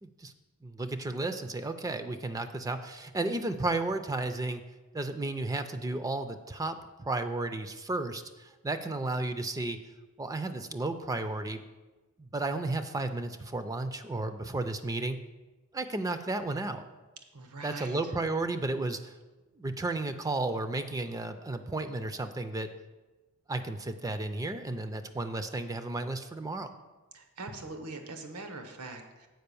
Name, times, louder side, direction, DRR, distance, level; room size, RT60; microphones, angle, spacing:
voice 1, 0.0-0.3 0.6-4.6 4.9-6.8 7.1-9.8 10.2-11.6 12.2-15.2 15.7-16.8 17.6-19.1 19.6-22.7 23.5-26.7, right 2 dB, 15° right, 9 dB, 0.4 m, -33 dB
voice 2, 17.3-18.0 27.1-29.3, right 3 dB, 85° right, 6 dB, 1.1 m, -42 dB
7.8 x 5.1 x 6.8 m, 1.2 s
head